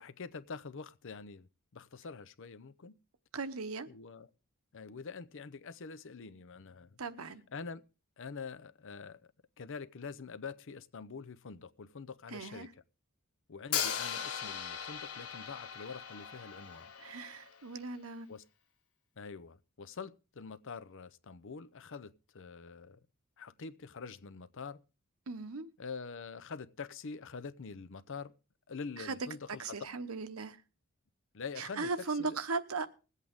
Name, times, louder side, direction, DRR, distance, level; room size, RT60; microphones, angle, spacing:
voice 1, 0.0-3.0 3.9-4.3 4.7-7.0 7.5-7.8 8.2-9.3 9.6-12.7 13.5-16.9 18.3-18.4 19.2-23.0 23.4-24.8 25.8-28.3 28.7-29.9 31.3-32.4, left 5 dB, 60° left, 0.7 m, -45 dB
voice 2, 3.3-3.9 7.0-7.4 12.3-12.7 17.0-18.3 25.3-25.7 29.0-29.2 29.6-30.6 31.6-32.9, right 4 dB, 80° right, 1.0 m, -38 dB
Hi-hat, 13.7-17.7, left 8 dB, 85° left, 1.2 m, -38 dB
21.0 x 8.3 x 3.6 m
head